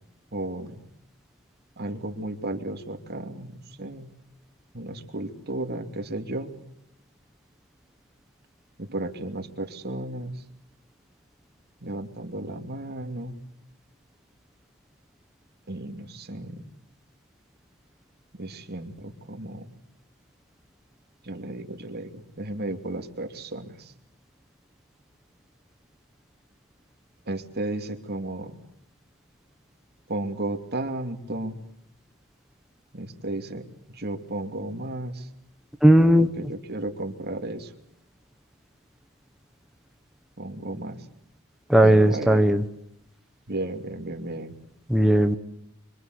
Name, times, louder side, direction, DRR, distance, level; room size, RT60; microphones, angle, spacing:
voice 1, 0.3-0.8 1.8-3.5 3.8-4.1 4.7-6.5 8.8-10.4 11.8-13.4 15.7-16.6 18.4-19.6 21.2-23.9 27.3-28.5 30.1-31.5 32.9-33.6 33.9-35.3 36.2-37.7 40.4-41.0 41.8-42.4 43.5-44.5, right 2 dB, 45° right, 6 dB, 2.8 m, -33 dB
voice 2, 35.8-36.3 41.7-42.6 44.9-45.4, right 1 dB, ahead, 5 dB, 1.1 m, -17 dB
26.0 x 25.0 x 8.1 m, 0.74 s
head